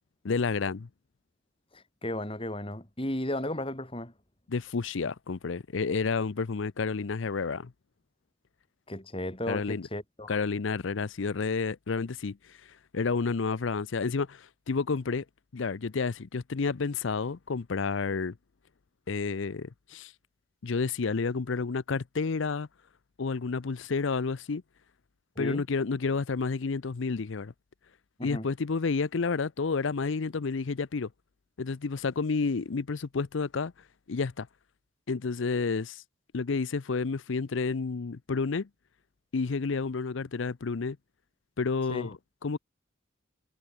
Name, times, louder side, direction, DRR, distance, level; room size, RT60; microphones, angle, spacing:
voice 1, 0.2-0.9 4.5-7.7 9.5-9.9 10.3-12.4 12.9-15.2 15.5-18.3 19.1-20.1 20.6-22.7 23.2-24.6 25.4-27.5 28.2-31.1 31.6-33.7 34.1-34.5 35.1-36.0 36.3-38.7 39.3-41.0 41.6-42.6, left 4 dB, 70° left, 0.6 m, -30 dB
voice 2, 1.7-4.1 8.9-10.4 25.4-25.6 28.2-28.5 41.9-42.1, left 1 dB, 25° left, 3.8 m, -34 dB
head